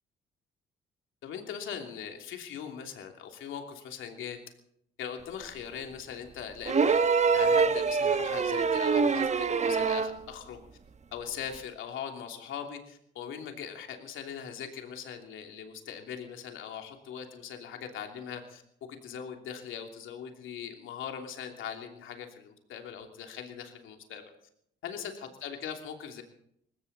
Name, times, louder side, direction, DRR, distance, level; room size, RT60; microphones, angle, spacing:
voice 1, 1.2-4.4 5.0-7.0 7.3-10.6 11.1-18.6 18.9-24.2 24.8-26.2, left 8 dB, 80° left, 4 dB, 3.0 m, -40 dB
sound 1, 6.7-10.2 11.5-11.6, right 5 dB, 35° right, 1.2 m, -25 dB
20.5 x 16.5 x 4.2 m, 0.71 s
cardioid pair, 90°, 20 cm